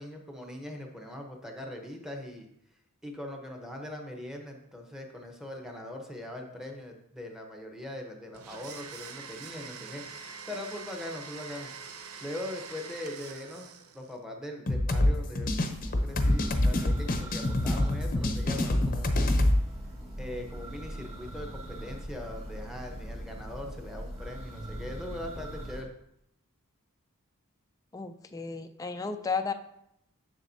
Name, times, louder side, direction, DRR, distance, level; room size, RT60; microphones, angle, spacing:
voice 1, 0.0-2.5 3.0-11.7 12.0-15.5 16.0-19.5 20.2-25.9, left 1 dB, ahead, 2 dB, 0.9 m, -41 dB
Domestic sounds home sounds, 8.3-14.2, right 5 dB, 80° right, 0.6 m, -44 dB
sound 1, 14.7-19.6, left 1 dB, 40° left, 0.7 m, -26 dB
Church bell, 15.6-25.8, equal, 25° right, 2.5 m, -41 dB
voice 2, 27.9-29.5, left 4 dB, 15° left, 7 dB, 0.3 m, -33 dB
7.3 x 7.0 x 2.7 m, 0.76 s
head